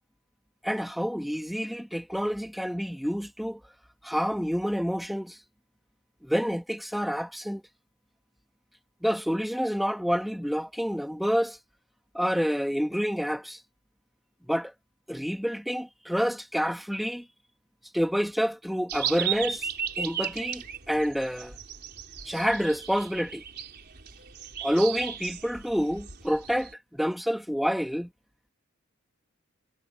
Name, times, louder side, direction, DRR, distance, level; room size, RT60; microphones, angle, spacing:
voice 1, 0.6-3.6 4.0-5.4 6.2-7.6 9.0-11.6 12.1-13.6 14.4-14.7 15.1-17.2 17.9-19.7 20.0-21.6 22.2-23.4 24.6-28.1, equal, ahead, 1.6 m, -28 dB
sound 1, 18.9-26.7, right 8 dB, 50° right, 4.1 m, -36 dB
head